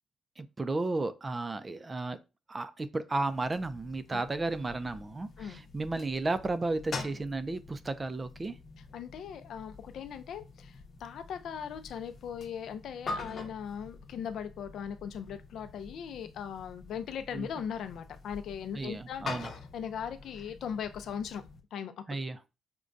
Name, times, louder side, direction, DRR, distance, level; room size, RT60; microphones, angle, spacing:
voice 1, 0.4-2.2 2.5-8.6 17.3-17.5 18.7-19.5 22.1-22.4, right 2 dB, 25° right, 0.4 m, -33 dB
sound 1, 3.3-21.6, left 3 dB, 50° left, 0.8 m, -46 dB
voice 2, 8.9-21.4 21.7-22.2, left 8 dB, 70° left, 0.5 m, -39 dB
5.1 x 2.2 x 2.5 m
cardioid pair, 90°, 0 cm